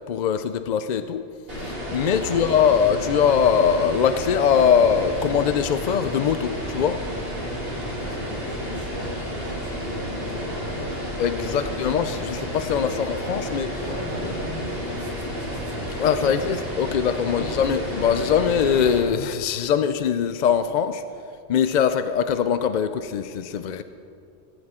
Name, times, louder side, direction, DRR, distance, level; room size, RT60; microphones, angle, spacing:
voice 1, 0.1-1.3 1.9-7.0 11.2-13.8 16.0-21.0 21.5-23.8, left 7 dB, 60° left, 11 dB, 0.5 m, -22 dB
sound 1, 1.5-19.0, equal, 55° right, 3.9 m, -31 dB
voice 2, 7.8-11.7 12.7-13.0 13.8-16.6 17.2-17.5, equal, 40° left, -5 dB, 3.6 m, -38 dB
17.0 x 15.5 x 3.7 m, 2.4 s
omnidirectional pair, 1.2 m